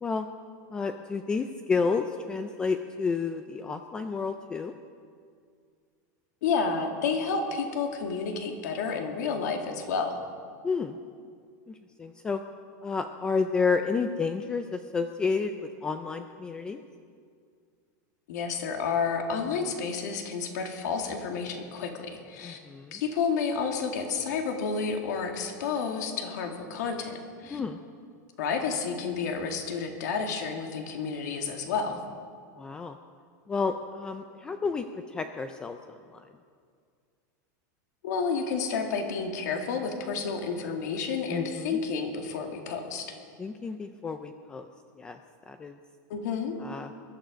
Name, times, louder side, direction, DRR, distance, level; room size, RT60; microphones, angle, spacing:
voice 1, 0.7-4.7 10.6-11.0 11.7-12.4 12.8-16.8 19.5-19.6 22.4-23.0 27.5-27.8 32.6-33.0 33.5-34.8 35.1-36.2 41.3-41.8 43.4-44.7 45.0-45.2 45.5-45.8 46.6-46.9, left 4 dB, 10° left, 7 dB, 0.3 m, -31 dB
voice 2, 6.4-10.2 18.3-22.6 22.9-27.6 28.4-32.0 38.0-43.2 46.1-46.6, left 5 dB, 70° left, 3 dB, 2.2 m, -30 dB
22.0 x 11.5 x 5.1 m, 2.1 s
supercardioid pair, 180°, 10 cm